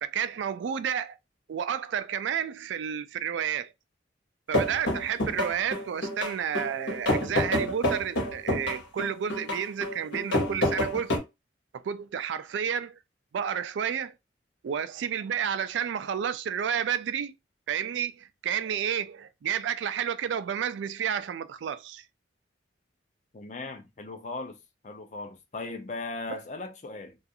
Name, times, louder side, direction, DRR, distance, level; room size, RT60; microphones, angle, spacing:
voice 1, 0.0-1.2 1.5-3.7 4.5-11.2 11.7-13.0 13.3-14.1 14.6-17.3 17.7-22.1 26.3-26.4, right 8 dB, 80° right, 0.3 m, -31 dB
sound 1, 4.5-11.2, left 1 dB, 85° left, 1.1 m, -28 dB
voice 2, 23.3-24.6 24.8-27.2, left 3 dB, 40° left, 0.5 m, -38 dB
2.4 x 2.4 x 2.6 m
head